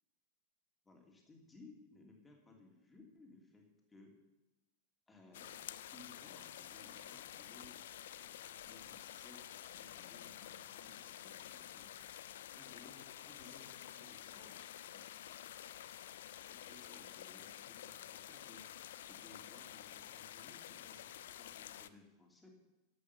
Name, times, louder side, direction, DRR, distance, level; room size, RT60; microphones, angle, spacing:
voice 1, 0.8-4.1 5.1-7.8 8.2-11.9 12.6-15.4 16.5-18.7 19.1-22.5, left 2 dB, 10° left, 0 dB, 2.9 m, -61 dB
sound 1, 5.3-21.9, left 11 dB, 60° left, 0.5 m, -50 dB
12.0 x 7.9 x 6.9 m, 1.0 s
figure-of-eight pair, 90°, 0 cm